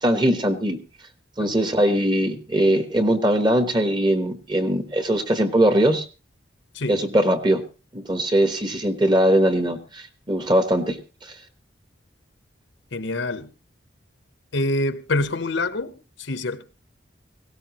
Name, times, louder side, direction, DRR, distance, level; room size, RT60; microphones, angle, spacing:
voice 1, 0.0-0.8 1.4-6.0 6.9-7.6 7.9-11.4, right 1 dB, 25° right, 1.2 m, -21 dB
voice 2, 12.9-13.5 14.5-16.6, left 2 dB, 70° left, 1.0 m, -26 dB
18.0 x 17.0 x 3.0 m
head